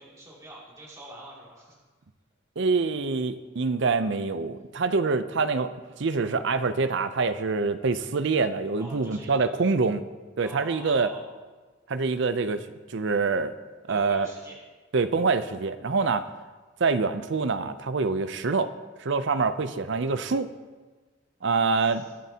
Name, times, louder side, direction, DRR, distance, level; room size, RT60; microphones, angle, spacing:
voice 1, 0.0-1.8 8.8-9.6 10.4-11.2 13.9-14.6 16.1-16.3 21.8-22.1, right 1 dB, 15° right, -6 dB, 2.6 m, -45 dB
voice 2, 2.6-10.0 10.4-11.1 11.9-13.5 13.9-14.3 14.9-16.3 16.8-18.7 19.0-20.5 21.4-22.0, right 4 dB, 60° right, 12 dB, 0.5 m, -25 dB
21.5 x 7.5 x 2.9 m, 1.3 s
head